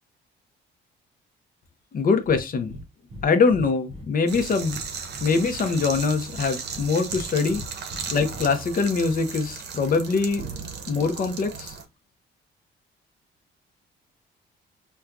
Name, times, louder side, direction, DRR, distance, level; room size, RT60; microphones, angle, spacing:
voice 1, 1.9-2.7 3.2-4.8 5.2-7.6 8.1-10.5 10.9-11.8, left 4 dB, 45° left, 0.7 m, -23 dB
Breathing, 2.2-2.4 2.7-3.2 3.5-4.9 5.1-6.0 6.3-7.2 7.5-8.4, equal, 30° right, 0.8 m, -40 dB
sound 1, 4.3-11.8, right 5 dB, 60° right, 0.8 m, -36 dB
4.3 x 2.3 x 2.4 m
cardioid pair, 90°, 20 cm